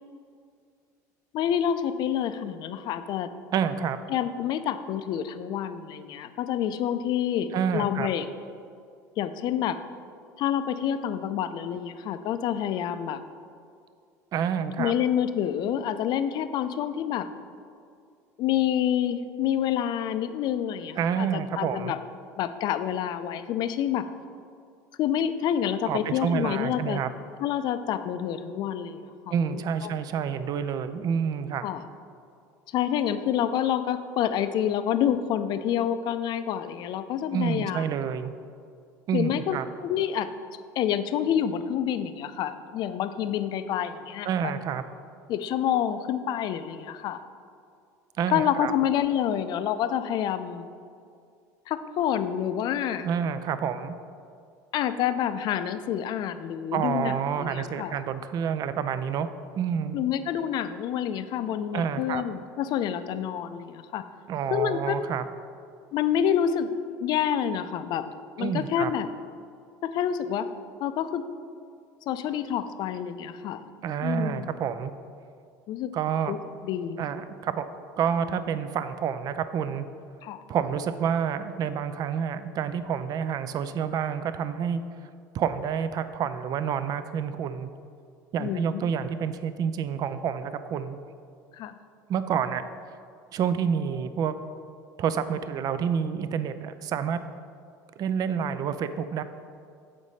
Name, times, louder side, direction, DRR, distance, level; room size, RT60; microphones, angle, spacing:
voice 1, 1.3-3.3 4.1-8.3 9.2-9.8 10.4-13.2 14.8-17.3 18.4-22.0 22.4-24.1 25.0-27.0 27.4-29.9 31.6-31.8 32.7-37.9 39.1-40.3 40.8-44.5 45.3-47.3 48.3-50.7 51.7-53.1 54.7-58.0 59.9-64.0 64.5-65.0 65.9-66.7 67.0-68.1 68.4-69.1 69.8-70.5 70.8-71.2 72.1-73.6 74.0-74.5 75.7-75.9 76.3-76.4 76.6-77.0 80.2-80.4 88.4-88.9 91.5-91.7, left 9 dB, 55° left, 11 dB, 0.4 m, -28 dB
voice 2, 3.5-4.0 7.5-8.1 14.3-14.9 21.0-21.9 25.9-27.1 29.3-31.7 37.3-38.3 39.1-39.7 44.2-44.8 48.2-48.7 53.0-54.0 56.7-60.0 61.7-62.2 64.3-65.2 68.4-68.9 73.8-74.9 75.9-76.3 77.0-77.7 78.0-79.9 80.5-84.8 85.3-87.7 88.3-91.0 92.1-92.6 93.3-94.3 95.0-97.2 98.0-99.2, right 7 dB, 45° right, 11 dB, 0.4 m, -28 dB
7.2 x 5.1 x 4.1 m, 2.3 s
hypercardioid pair, 85°, 9 cm